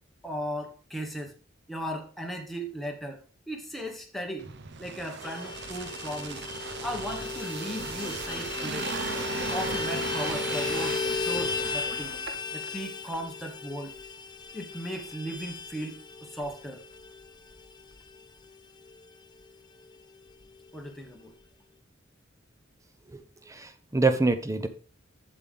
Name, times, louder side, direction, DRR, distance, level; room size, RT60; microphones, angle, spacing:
voice 1, 0.2-1.3 1.7-3.2 3.5-4.5 4.8-6.4 6.8-8.9 9.5-12.2 12.5-13.9 14.5-16.8 20.7-21.3, equal, ahead, 1 dB, 1.4 m, -37 dB
sound 1, 4.4-12.7 13.1-13.2, right 6 dB, 55° right, 0.7 m, -37 dB
Vehicle horn car horn honking, 5.2-19.1 19.4-19.5 19.8-20.0 20.3-21.0, left 5 dB, 20° left, 0.6 m, -35 dB
sound 2, 7.8-12.2, right 2 dB, 80° right, 1.1 m, -43 dB
voice 2, 23.1-24.7, right 3 dB, 15° right, 10 dB, 0.7 m, -26 dB
8.1 x 7.6 x 3.5 m, 0.35 s
head